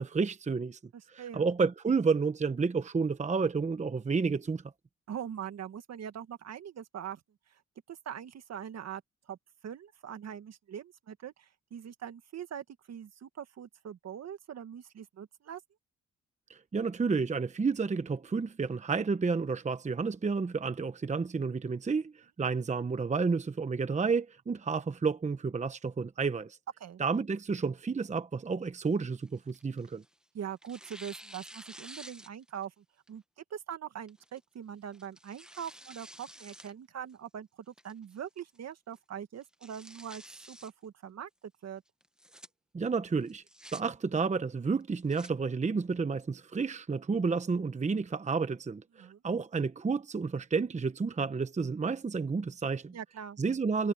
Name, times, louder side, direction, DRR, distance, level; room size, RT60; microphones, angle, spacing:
voice 1, 0.0-0.8 1.1-4.6 16.5-26.6 27.0-30.0 42.7-43.4 43.7-53.0 53.4-53.9, right 4 dB, 25° right, 1.0 m, -31 dB
voice 2, 0.9-1.5 5.1-7.2 7.5-7.6 7.9-9.0 9.3-9.4 9.6-15.6 26.8-27.0 30.3-41.3 41.6-41.8 49.0-49.2 52.9-53.4, right 9 dB, 60° right, 1.9 m, -42 dB
Tearing, 28.8-30.1 30.6-32.7 33.1-33.2 34.1-34.4 34.9-36.7 37.1-37.2 37.8-38.2 38.5-38.6 38.9-39.0 39.4-40.7 42.0-42.5 43.3-43.8 44.8-45.3, equal, ahead, 1.5 m, -50 dB
cardioid pair, 90°, 30 cm